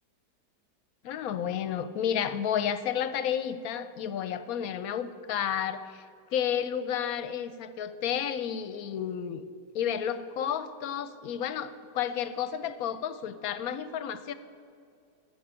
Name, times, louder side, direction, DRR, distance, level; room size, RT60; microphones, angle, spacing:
voice 1, 1.0-6.1 6.3-9.5 9.7-14.3, left 9 dB, 65° left, 13 dB, 0.9 m, -31 dB
11.0 x 7.6 x 8.8 m, 2.4 s
omnidirectional pair, 1.9 m